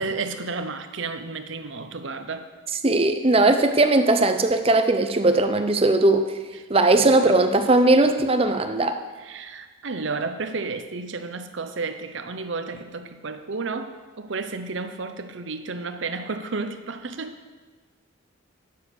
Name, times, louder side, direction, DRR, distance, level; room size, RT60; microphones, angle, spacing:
voice 1, 0.0-2.5 6.9-7.4 9.2-17.4, right 4 dB, 65° right, 9 dB, 0.7 m, -32 dB
voice 2, 2.8-6.3 6.7-9.0, right 2 dB, 30° right, 7 dB, 0.6 m, -19 dB
9.5 x 6.4 x 6.7 m, 1.3 s
head